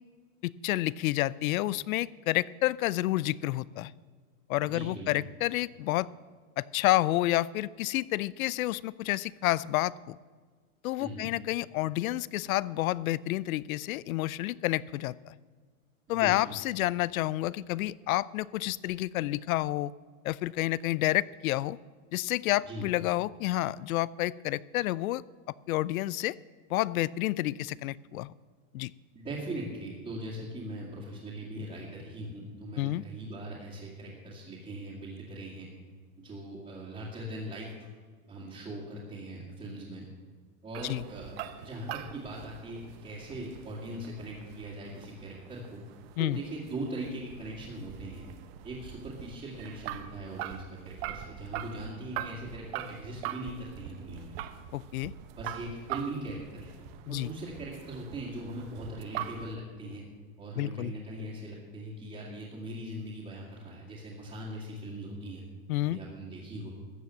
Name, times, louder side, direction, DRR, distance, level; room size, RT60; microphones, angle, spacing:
voice 1, 0.4-3.9 4.5-6.1 6.6-10.2 10.8-15.3 16.1-19.9 20.2-21.8 22.1-25.2 25.7-26.4 26.7-28.3 28.7-28.9 32.8-33.0 40.8-41.0 46.2-46.4 54.7-55.1 57.1-57.3 60.5-60.9 65.7-66.0, left 16 dB, 75° left, 21 dB, 0.5 m, -29 dB
voice 2, 4.6-5.2 11.0-11.3 16.1-16.4 22.7-22.9 29.1-35.7 36.2-37.7 38.3-40.1 40.6-45.8 46.2-48.3 48.6-54.3 55.4-56.7 57.1-60.1 60.4-65.4 65.8-66.7, right 1 dB, 15° right, -7 dB, 2.2 m, -40 dB
sound 1, 40.7-59.6, right 11 dB, 45° right, 0.8 m, -43 dB
14.0 x 8.3 x 7.6 m, 1.5 s
supercardioid pair, 155°, 42 cm